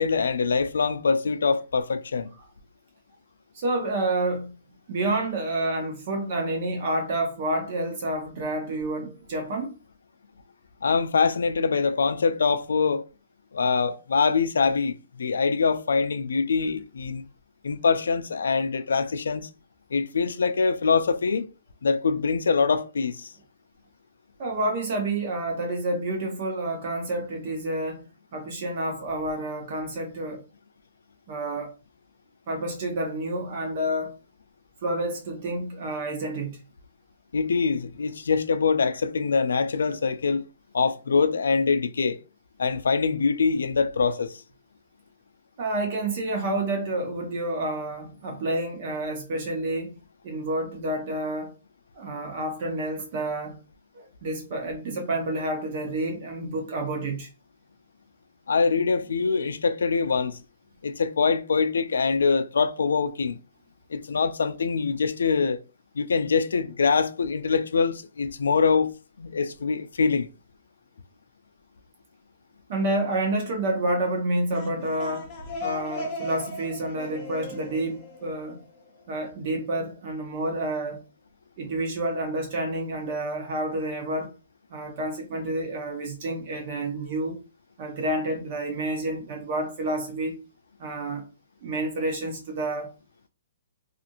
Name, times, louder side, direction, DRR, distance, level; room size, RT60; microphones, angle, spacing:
voice 1, 0.0-2.3 10.8-13.0 13.5-17.3 17.6-19.5 19.9-21.5 21.8-23.3 37.3-40.4 40.7-42.2 42.6-44.4 58.5-60.4 60.8-63.4 63.9-65.6 66.0-70.3, left 5 dB, 90° left, 0.3 m, -24 dB
voice 2, 3.5-4.5 4.9-9.7 24.4-30.4 31.3-31.7 32.5-34.2 34.8-36.6 45.6-50.0 50.2-51.5 52.0-53.6 53.9-57.3 72.7-75.3 75.6-78.6 79.1-81.0 81.6-84.3 84.7-87.4 87.8-90.4 90.8-91.3 91.6-92.9, right 1 dB, 35° right, 0.6 m, -29 dB
had me like yeah, 74.3-79.0, left 2 dB, 20° left, 0.7 m, -37 dB
2.8 x 2.4 x 2.6 m
hypercardioid pair, 170°, 0 cm